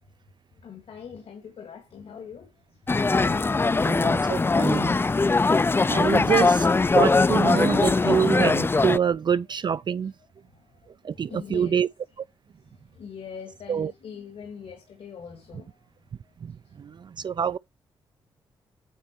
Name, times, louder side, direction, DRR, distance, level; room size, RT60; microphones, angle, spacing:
voice 1, 0.6-2.5 10.5-10.6 11.3-11.8 12.9-15.7, left 7 dB, 70° left, 1.9 m, -42 dB
sound 1, 2.9-9.0, left 3 dB, 20° left, 0.4 m, -21 dB
voice 2, 3.8-5.0 5.8-6.7 6.9-10.1 11.0-11.9 13.7-13.9 16.4-16.5 16.8-17.6, right 7 dB, 45° right, 0.3 m, -26 dB
9.3 x 4.2 x 4.5 m
supercardioid pair, 50°, 10 cm